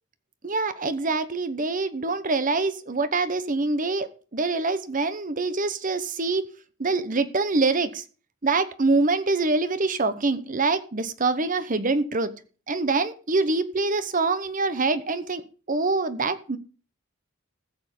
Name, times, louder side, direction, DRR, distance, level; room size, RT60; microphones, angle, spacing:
voice 1, 0.4-6.5 6.8-8.0 8.4-12.3 12.7-16.6, right 3 dB, 40° right, 1.0 m, -25 dB
15.0 x 7.1 x 5.4 m
head